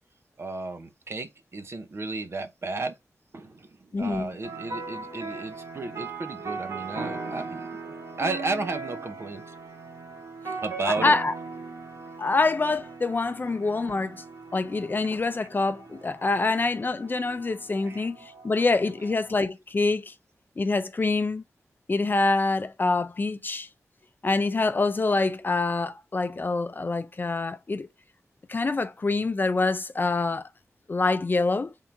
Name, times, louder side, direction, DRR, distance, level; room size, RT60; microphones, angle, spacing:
voice 1, 0.4-2.9 3.3-9.5 10.6-11.2 17.9-18.1, right 3 dB, 50° right, 0.8 m, -33 dB
voice 2, 3.9-4.3 10.4-10.5 10.9-11.3 12.2-14.2 14.5-20.1 20.6-21.4 21.9-23.7 24.2-27.9 28.5-30.5 30.9-31.7, left 3 dB, 35° left, 0.5 m, -26 dB
sound 1, 4.4-19.4, right 4 dB, 90° right, 1.6 m, -39 dB
3.7 x 2.7 x 4.5 m
wide cardioid pair, 85°, 5 cm